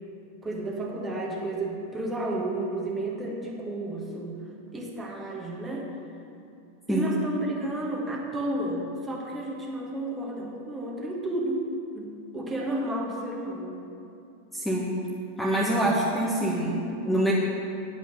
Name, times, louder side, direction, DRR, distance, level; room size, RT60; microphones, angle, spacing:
voice 1, 0.4-4.4 4.7-5.9 6.9-11.7 11.9-13.8 15.6-16.0, right 1 dB, 15° right, -2 dB, 1.6 m, -32 dB
voice 2, 14.5-15.0 15.4-17.3, right 1 dB, 5° left, -5 dB, 1.2 m, -25 dB
9.8 x 5.6 x 6.5 m, 2.7 s
figure-of-eight pair, 90°, 0 cm